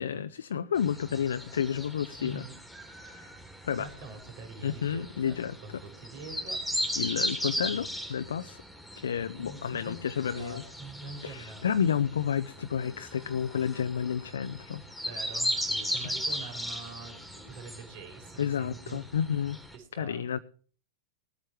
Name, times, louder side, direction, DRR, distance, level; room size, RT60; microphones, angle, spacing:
voice 1, 0.0-2.4 3.0-3.3 3.6-3.9 4.6-5.6 7.0-8.6 9.0-10.6 11.2-14.8 18.4-19.6 19.9-20.4, left 8 dB, 75° left, 12 dB, 0.6 m, -31 dB
sound 1, 0.8-19.7, equal, ahead, 3.1 m, -37 dB
voice 2, 2.2-2.5 3.8-5.4 5.6-6.6 9.2-11.6 15.0-19.0 19.7-20.3, right 3 dB, 55° right, 4 dB, 5.0 m, -45 dB
19.5 x 9.0 x 4.6 m, 0.43 s
figure-of-eight pair, 95°, 0 cm